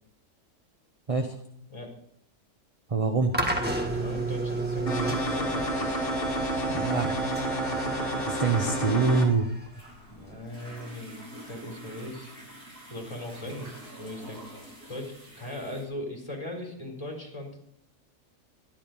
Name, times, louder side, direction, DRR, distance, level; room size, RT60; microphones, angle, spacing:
voice 1, 2.9-3.3 6.7-7.2 8.3-9.5, right 4 dB, 25° right, 5 dB, 0.9 m, -25 dB
sound 1, 3.3-10.4, right 2 dB, 5° right, 1.6 m, -33 dB
voice 2, 3.9-5.9 10.1-12.3 12.9-14.4 14.9-17.6, left 1 dB, 15° left, 0 dB, 4.3 m, -39 dB
sound 2, 4.9-9.3, right 1 dB, 35° left, 2.7 m, -29 dB
sound 3, 9.7-15.8, equal, 80° right, 6.0 m, -47 dB
13.0 x 12.0 x 5.2 m, 0.71 s
omnidirectional pair, 1.6 m